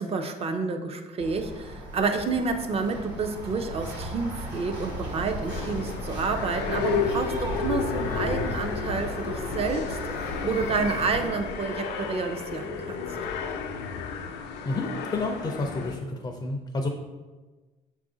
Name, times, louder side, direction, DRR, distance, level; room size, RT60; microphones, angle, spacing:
voice 1, 0.0-13.0, right 4 dB, 35° right, 6 dB, 0.5 m, -29 dB
sound 1, 1.2-11.3, equal, 85° right, 1.2 m, -36 dB
sound 2, 5.5-16.0, left 5 dB, 85° left, 0.5 m, -32 dB
voice 2, 14.7-16.9, left 2 dB, 25° left, 3 dB, 0.4 m, -30 dB
5.4 x 2.5 x 3.7 m, 1.3 s
cardioid pair, 110°, 17 cm